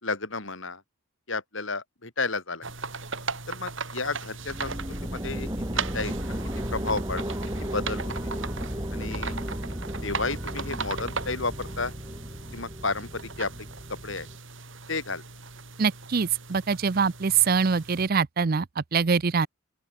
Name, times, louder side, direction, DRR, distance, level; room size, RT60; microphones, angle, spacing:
voice 1, 0.0-0.8 1.3-2.6 3.5-6.1 6.7-7.2 7.7-8.1 8.9-9.3 10.0-11.9 12.5-13.5 13.9-14.3 14.9-15.2, left 3 dB, 60° left, 4.3 m, -32 dB
sound 1, 2.6-18.1, right 4 dB, 60° right, 5.8 m, -38 dB
sound 2, 4.4-14.4, equal, 20° right, 3.9 m, -34 dB
voice 2, 15.8-19.5, right 5 dB, 45° right, 0.5 m, -24 dB
open air
head